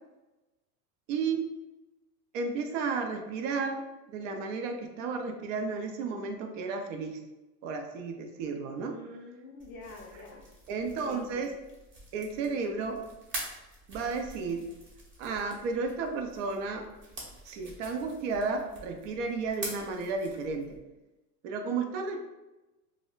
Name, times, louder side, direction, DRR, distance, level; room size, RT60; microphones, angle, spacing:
voice 1, 1.1-1.4 2.3-7.2 7.6-9.0 10.7-11.5 12.1-13.0 13.9-14.7 15.2-16.9 17.5-20.8 21.4-22.2, right 4 dB, 55° right, 5 dB, 0.5 m, -33 dB
voice 2, 8.7-10.4 10.8-11.3, left 3 dB, 35° left, 0 dB, 0.4 m, -47 dB
sound 1, 9.6-20.8, right 2 dB, 25° right, 0.7 m, -46 dB
2.2 x 2.0 x 3.7 m, 1.0 s
supercardioid pair, 125°, 47 cm